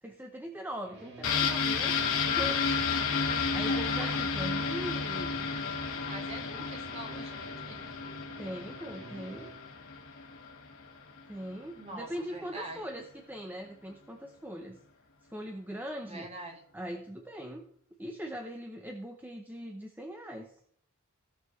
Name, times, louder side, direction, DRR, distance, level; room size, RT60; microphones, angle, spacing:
voice 1, 0.0-2.6 3.5-5.5 8.4-9.5 11.3-14.8 15.3-16.3 16.7-17.7 18.0-20.6, equal, 10° right, 3 dB, 0.7 m, -41 dB
sound 1, 0.8-9.5, right 2 dB, 50° right, 2.7 m, -52 dB
sound 2, 1.2-10.9 11.2-11.3, left 5 dB, 70° left, 1.6 m, -32 dB
voice 2, 3.7-4.2 6.1-7.8 11.8-12.9 16.0-16.6, right 2 dB, 30° right, 2 dB, 1.8 m, -44 dB
17.0 x 5.8 x 3.1 m, 0.66 s
head